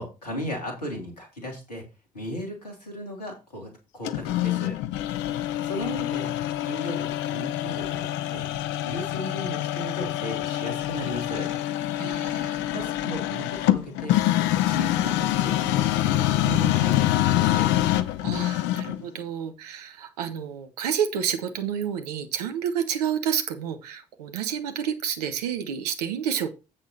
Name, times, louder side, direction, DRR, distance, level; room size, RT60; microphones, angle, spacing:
voice 1, 0.0-1.8 2.1-4.8 5.6-6.3 6.6-8.5 8.8-11.5 12.7-14.2 14.6-17.7, equal, 90° left, 1 dB, 2.8 m, -36 dB
sound 1, 4.0-19.0, left 14 dB, 70° left, 0.8 m, -25 dB
voice 2, 12.0-12.7 18.2-26.5, right 8 dB, 80° right, 9 dB, 1.1 m, -29 dB
8.4 x 7.4 x 4.0 m, 0.28 s
figure-of-eight pair, 45°, 20 cm